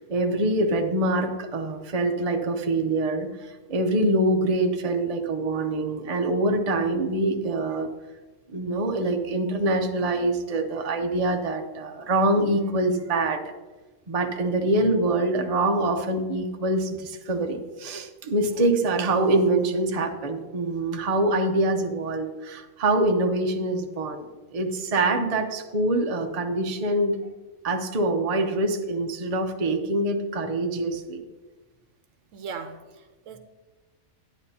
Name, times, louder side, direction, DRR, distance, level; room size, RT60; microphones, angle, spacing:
voice 1, 0.0-7.9 8.5-13.4 14.1-24.3 24.5-27.2 27.6-31.2, right 2 dB, 35° right, 4 dB, 0.7 m, -25 dB
voice 2, 32.3-33.4, right 5 dB, 70° right, 8 dB, 1.1 m, -38 dB
11.0 x 9.8 x 2.8 m, 1.2 s
omnidirectional pair, 1.4 m